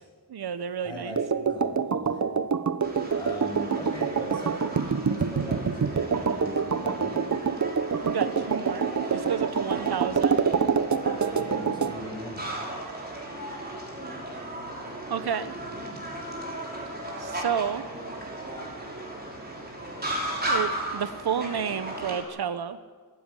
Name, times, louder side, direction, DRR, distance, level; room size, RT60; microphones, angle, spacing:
voice 1, 0.3-1.2 8.0-10.4 15.1-15.5 17.2-17.8 20.4-22.8, right 8 dB, 70° right, 12 dB, 1.0 m, -31 dB
voice 2, 0.8-1.2 1.5-2.2 3.1-7.3 9.8-9.9 11.3-12.5, left 1 dB, 10° left, 0 dB, 7.1 m, -40 dB
sound 1, 1.2-12.0, right 6 dB, 45° right, 1.1 m, -26 dB
sound 2, 2.8-22.2, right 1 dB, 25° right, 6.0 m, -36 dB
25.5 x 13.0 x 9.9 m, 1.5 s
wide cardioid pair, 115°, 39 cm